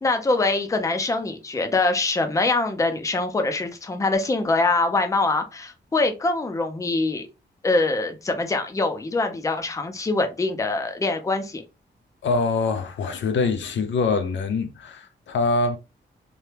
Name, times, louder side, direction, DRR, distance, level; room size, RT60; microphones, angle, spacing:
voice 1, 0.0-7.3 7.6-11.6, left 3 dB, 15° left, 0.5 m, -24 dB
voice 2, 12.2-15.8, left 4 dB, 75° left, 0.5 m, -24 dB
3.4 x 2.2 x 2.8 m
wide cardioid pair, 130°, 19 cm